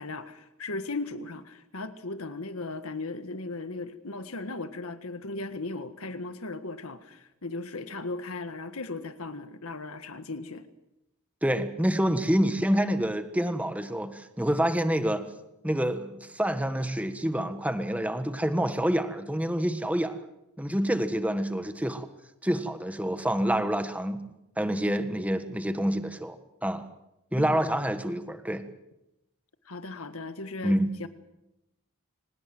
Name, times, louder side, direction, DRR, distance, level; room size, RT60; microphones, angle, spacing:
voice 1, 0.0-10.6 27.4-27.6 29.6-31.1, left 3 dB, 75° left, 10 dB, 1.7 m, -37 dB
voice 2, 11.4-15.2 15.6-20.2 20.6-22.1 22.4-24.2 24.6-26.8 27.3-28.6 30.6-30.9, equal, 5° right, 9 dB, 1.5 m, -27 dB
24.5 x 20.0 x 7.8 m, 0.89 s
head